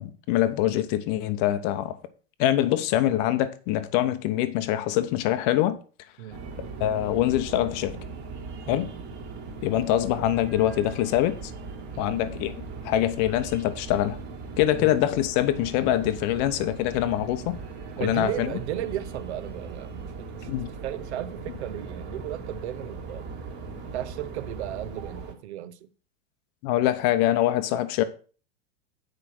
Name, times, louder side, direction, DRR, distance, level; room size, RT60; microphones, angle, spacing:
voice 1, 0.0-2.0 2.4-5.8 6.8-8.0 8.7-8.9 9.6-11.4 12.0-14.2 14.6-17.6 18.0-18.5 20.5-20.7 26.6-28.0, left 13 dB, 35° left, 0.8 m, -24 dB
sound 1, 6.3-25.3, right 4 dB, 30° right, 1.8 m, -39 dB
voice 2, 18.0-20.5 20.8-23.2 23.9-25.9, right 12 dB, 60° right, 1.0 m, -35 dB
9.3 x 5.0 x 6.1 m
supercardioid pair, 165°, 37 cm